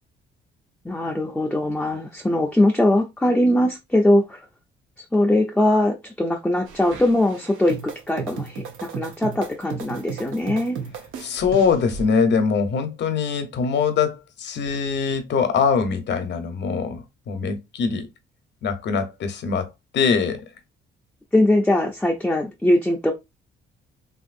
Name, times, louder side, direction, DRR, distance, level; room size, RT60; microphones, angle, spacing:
voice 1, 0.8-4.4 5.1-10.8 21.3-23.1, left 1 dB, 5° left, 0.5 m, -21 dB
sound 1, 6.7-12.1, right 6 dB, 80° right, 0.7 m, -35 dB
voice 2, 11.2-18.1 18.6-20.4, left 5 dB, 60° left, 0.8 m, -23 dB
3.0 x 2.6 x 2.5 m
cardioid pair, 90°, 20 cm